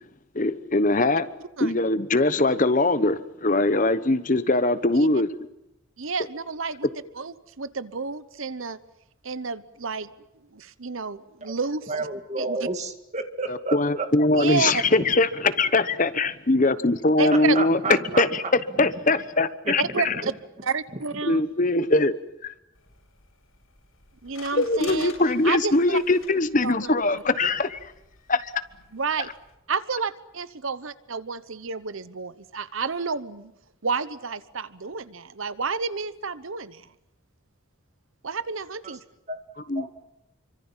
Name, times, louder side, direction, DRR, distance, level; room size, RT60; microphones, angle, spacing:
voice 1, 0.3-1.3 1.6-5.3 13.5-17.8 18.2-18.4 18.8-20.1 21.2-22.1 22.4-22.5 24.5-27.9 28.3-28.5 39.7-39.9, left 2 dB, 35° left, 13 dB, 1.0 m, -22 dB
voice 2, 6.0-6.9 7.1-8.8 9.2-10.1 10.5-11.9 12.4-12.7 14.3-14.8 17.2-17.6 19.8-20.3 20.6-21.5 24.2-25.1 25.4-26.0 26.6-27.2 28.9-29.3 29.7-33.5 33.8-36.9 38.2-39.0, right 5 dB, 70° right, 15 dB, 1.0 m, -30 dB
voice 3, 11.9-14.1 17.3-18.2 18.8-18.9 19.7-20.3 39.3-39.9, right 3 dB, 30° right, 7 dB, 2.1 m, -31 dB
sound 1, 22.7-29.6, left 5 dB, 80° left, 7.8 m, -48 dB
27.5 x 24.5 x 7.4 m, 0.87 s
head